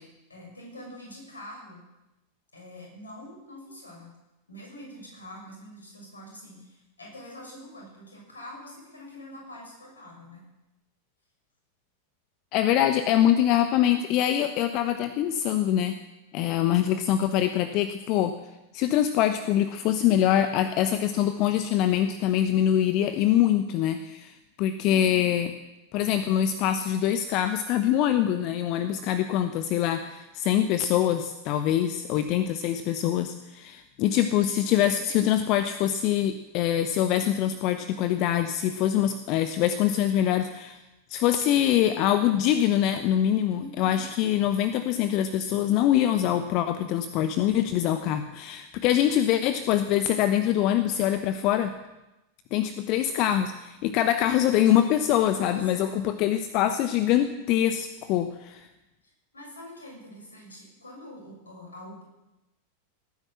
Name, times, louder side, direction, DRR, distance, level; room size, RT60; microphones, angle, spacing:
voice 1, 0.3-1.8 2.5-4.1 4.5-10.4 31.6-32.2 43.5-44.0 55.2-56.1 59.3-62.0, left 1 dB, 75° left, -1 dB, 6.8 m, -45 dB
voice 2, 12.5-16.0 16.3-18.4 18.7-25.5 25.9-40.8 41.1-51.7 52.5-58.7, left 11 dB, 40° left, 10 dB, 0.9 m, -24 dB
18.5 x 10.0 x 7.7 m, 0.98 s
figure-of-eight pair, 90°, 0 cm